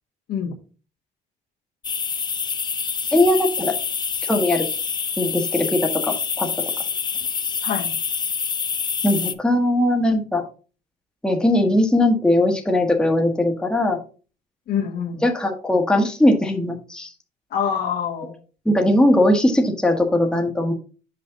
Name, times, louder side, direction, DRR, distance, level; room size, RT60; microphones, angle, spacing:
sound 1, 1.8-9.3, left 6 dB, 25° left, 0.5 m, -26 dB
voice 1, 3.1-3.8 4.3-4.6 5.2-6.5 9.0-10.4 11.2-14.0 15.2-17.1 18.6-20.7, left 1 dB, 5° left, 2 dB, 1.2 m, -19 dB
voice 2, 7.6-8.0 14.7-15.2 17.5-18.4, left 7 dB, 70° left, 2 dB, 1.6 m, -25 dB
5.9 x 5.0 x 3.9 m, 0.36 s
cardioid pair, 110°, 17 cm